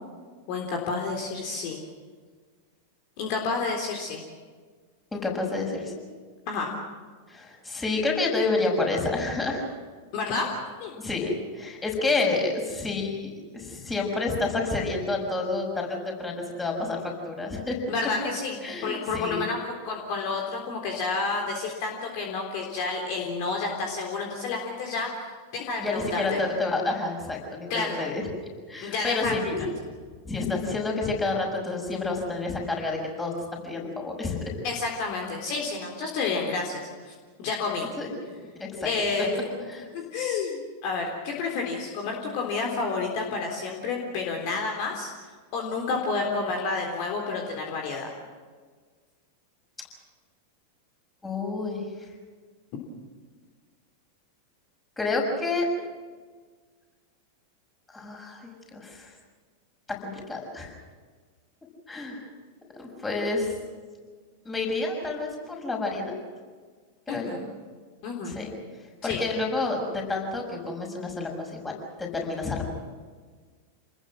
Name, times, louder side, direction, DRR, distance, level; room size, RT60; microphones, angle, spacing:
voice 1, 0.5-1.8 3.2-4.2 6.5-6.7 10.1-10.5 10.8-10.9 17.9-25.1 25.5-26.4 27.7-28.1 28.8-29.3 34.6-37.1 37.4-37.9 38.8-39.5 39.9-45.1 45.5-48.1 67.1-67.4 68.0-68.4 69.0-69.2, left 4 dB, 45° left, 1 dB, 3.7 m, -30 dB
voice 2, 5.1-5.9 7.3-9.7 11.0-17.0 17.2-17.8 18.6-19.5 25.8-29.6 30.2-34.5 38.0-38.1 38.6-38.9 39.7-39.9 51.2-51.8 55.0-55.7 57.9-58.4 58.7-59.1 60.0-60.7 61.9-62.2 62.7-63.5 64.4-66.2 67.1-67.4 68.3-68.5 69.0-72.7, left 3 dB, 15° left, 1 dB, 6.5 m, -29 dB
28.0 x 20.5 x 6.3 m, 1.5 s
figure-of-eight pair, 90°, 0 cm